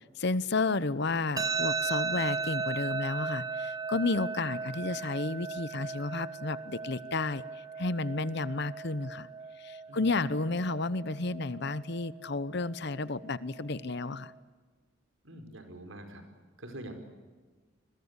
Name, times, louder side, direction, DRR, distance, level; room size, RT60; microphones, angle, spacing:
voice 1, 0.2-7.4 7.8-9.3 9.6-14.3, left 3 dB, 55° left, 16 dB, 0.9 m, -32 dB
sound 1, 1.4-14.3, right 4 dB, 20° right, 1.0 m, -37 dB
voice 2, 15.2-16.3 16.6-16.9, right 1 dB, 75° right, 6 dB, 5.0 m, -45 dB
27.5 x 22.0 x 8.3 m, 1.4 s
head